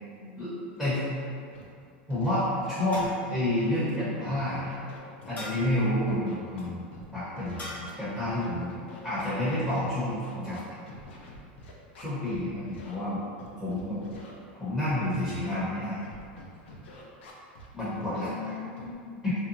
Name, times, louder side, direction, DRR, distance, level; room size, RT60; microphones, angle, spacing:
voice 1, 0.0-1.0 18.2-19.3, left 5 dB, 65° right, -7 dB, 1.1 m, -42 dB
Scratching (performance technique), 1.5-1.6 2.1-2.3 2.6-3.1 3.4-4.4 4.7-7.0 7.4-12.4 12.7-12.9 13.4-14.3 14.8-14.9 15.3-15.6 16.0-17.7 18.0-18.2 18.8-18.9, left 2 dB, 85° left, 0.5 m, -47 dB
voice 2, 2.1-2.5 2.8-4.7 5.3-6.9 7.1-8.7 9.0-10.6 12.0-13.2 13.6-14.0 14.6-16.0 17.7-18.5 19.2-19.4, left 1 dB, ahead, -12 dB, 0.9 m, -29 dB
sound 1, 2.9-3.5 5.4-5.9 7.6-8.0, left 1 dB, 30° left, 1.2 m, -42 dB
2.8 x 2.2 x 2.6 m, 2.3 s
supercardioid pair, 120°, 6 cm